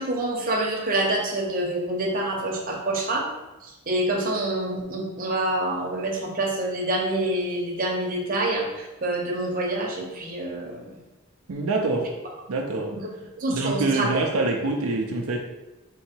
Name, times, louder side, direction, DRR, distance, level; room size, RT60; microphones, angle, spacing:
voice 1, 0.0-3.2 3.6-11.0 12.9-13.0 13.4-14.3, right 1 dB, 40° right, -1 dB, 0.8 m, -27 dB
voice 2, 11.5-12.1 12.5-12.9 13.5-15.4, right 3 dB, 80° right, 1 dB, 0.5 m, -25 dB
3.8 x 2.8 x 4.4 m, 1.1 s
head